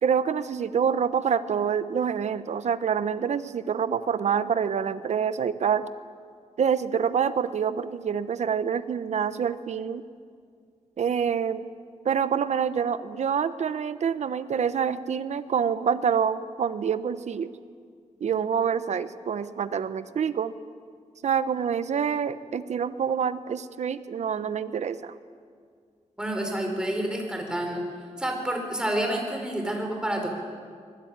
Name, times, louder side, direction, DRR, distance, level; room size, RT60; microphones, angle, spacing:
voice 1, 0.0-5.9 6.6-10.0 11.0-11.7 12.0-17.5 18.2-20.5 21.2-25.1, right 7 dB, 70° right, 12 dB, 1.1 m, -26 dB
voice 2, 26.2-27.8 28.2-30.3, right 1 dB, 5° right, 2 dB, 5.0 m, -29 dB
25.0 x 21.0 x 9.7 m, 2.1 s
wide cardioid pair, 145°, 12 cm